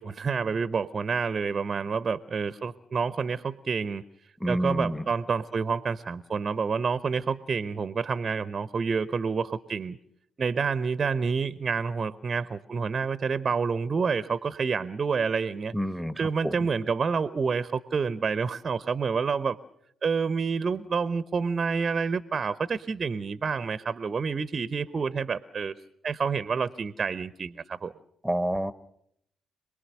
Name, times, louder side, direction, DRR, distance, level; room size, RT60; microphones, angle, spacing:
voice 1, 0.0-4.0 4.5-10.0 10.4-15.7 16.2-19.6 20.0-25.7 26.0-27.9, right 5 dB, 40° right, 16 dB, 0.8 m, -28 dB
voice 2, 4.4-5.0 15.7-16.6 28.2-28.7, equal, ahead, 14 dB, 1.3 m, -28 dB
27.0 x 19.5 x 6.5 m, 0.73 s
figure-of-eight pair, 40°, 0 cm